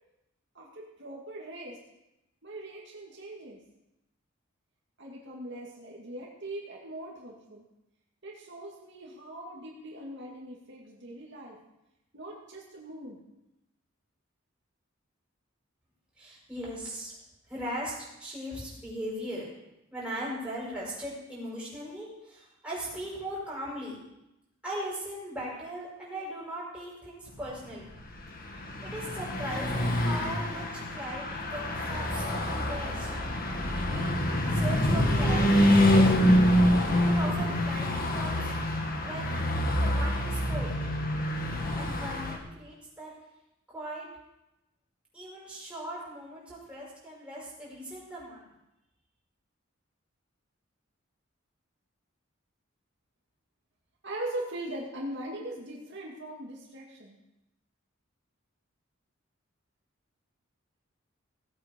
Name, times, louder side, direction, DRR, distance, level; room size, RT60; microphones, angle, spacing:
voice 1, 0.5-1.8 2.4-3.6 5.0-7.6 8.2-11.6 12.1-13.2 54.0-57.2, right 1 dB, 60° right, -3 dB, 2.3 m, -40 dB
voice 2, 16.2-17.1 17.5-17.9 18.2-19.5 19.9-24.0 24.6-27.9 28.4-33.2 33.7-36.7 37.0-38.5 39.0-39.4 39.7-40.7 41.7-43.1 43.7-44.1 45.1-48.5, right 1 dB, 5° right, -7 dB, 5.8 m, -39 dB
Car passing by / Truck, 28.0-42.4, left 1 dB, 45° left, 1.6 m, -26 dB
17.5 x 8.5 x 5.3 m, 0.90 s
head